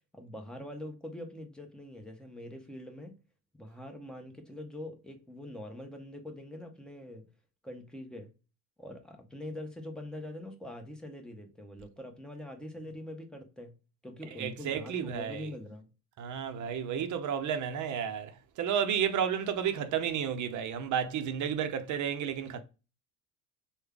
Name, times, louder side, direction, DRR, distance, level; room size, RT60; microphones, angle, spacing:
voice 1, 0.1-3.2 3.5-7.3 7.6-8.3 8.8-13.7 14.0-15.9 22.5-22.6, left 1 dB, ahead, 0.8 m, -44 dB
voice 2, 14.4-15.5 16.2-22.6, right 8 dB, 40° right, 0.6 m, -32 dB
3.3 x 2.3 x 3.5 m
hypercardioid pair, 85°, 46 cm